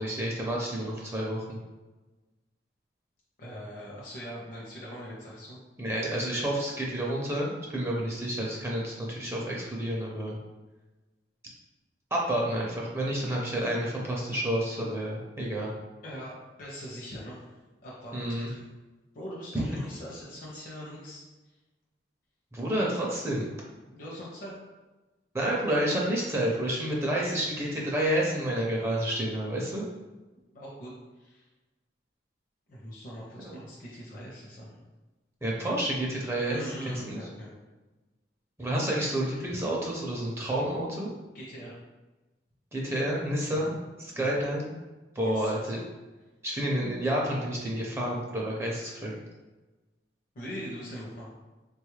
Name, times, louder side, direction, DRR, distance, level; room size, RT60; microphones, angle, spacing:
voice 1, 0.0-1.6 5.8-10.4 12.1-15.7 18.1-18.5 19.5-19.7 22.5-23.5 25.3-29.8 33.4-33.6 35.4-37.2 38.6-41.1 42.7-43.7 44.0-44.7 45.2-45.8 46.4-49.2, right 1 dB, 15° right, -3 dB, 0.4 m, -29 dB
voice 2, 3.4-5.6 16.0-17.4 17.8-18.7 19.1-21.3 23.9-24.5 30.5-30.9 31.2-31.5 32.7-34.8 36.4-37.5 41.3-41.8 43.5-43.7 44.1-44.3 45.2-45.7 50.4-51.3, equal, 50° left, -5 dB, 0.6 m, -42 dB
3.4 x 2.3 x 3.1 m, 1.2 s
head